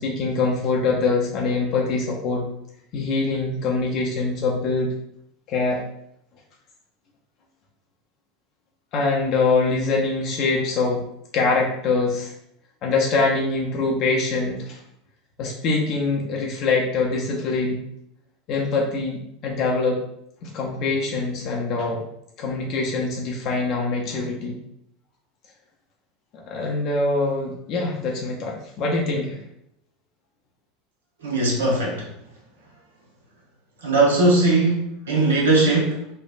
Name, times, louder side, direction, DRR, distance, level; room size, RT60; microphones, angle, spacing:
voice 1, 0.0-2.5 2.9-4.9 5.5-5.8 8.9-11.0 11.3-12.3 12.8-14.8 15.4-17.8 18.5-20.0 20.4-22.0 22.4-24.6 26.5-29.4, left 3 dB, 50° left, -2 dB, 0.5 m, -24 dB
voice 2, 31.2-32.1 33.8-36.1, right 2 dB, 75° right, -2 dB, 0.9 m, -20 dB
3.2 x 2.1 x 2.4 m, 0.75 s
hypercardioid pair, 80°, 0 cm